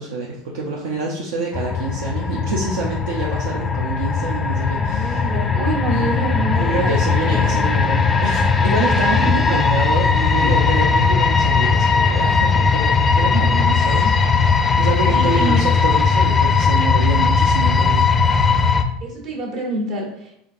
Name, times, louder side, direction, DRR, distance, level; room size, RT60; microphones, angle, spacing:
voice 1, 0.0-5.2 5.9-18.1, right 3 dB, 80° right, -2 dB, 0.5 m, -27 dB
sound 1, 1.5-18.8, left 5 dB, 20° left, 0.4 m, -18 dB
voice 2, 4.7-7.0 7.3-7.4 9.1-9.6 10.2-10.5 14.0-14.1 15.1-15.6 19.0-20.3, right 2 dB, 55° right, -1 dB, 1.2 m, -27 dB
3.7 x 3.4 x 2.5 m, 0.72 s
hypercardioid pair, 100°, 0 cm